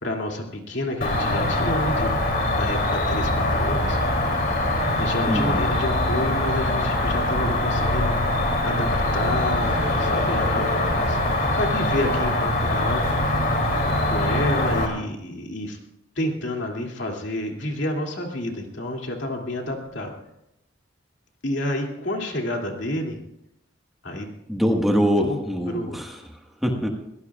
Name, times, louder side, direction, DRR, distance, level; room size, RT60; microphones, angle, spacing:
voice 1, 0.0-2.1 2.5-4.5 5.0-8.1 8.6-10.7 11.1-11.2 11.6-13.0 14.0-15.8 16.2-20.1 21.4-23.2 24.0-24.3 25.2-25.4 25.7-26.0, left 1 dB, 70° left, 1 dB, 2.6 m, -29 dB
Cricket, 1.0-14.9, left 1 dB, 50° left, 3.1 m, -23 dB
voice 2, 5.3-5.6 24.5-26.9, equal, ahead, 1 dB, 1.5 m, -24 dB
22.5 x 17.0 x 2.4 m, 0.82 s
head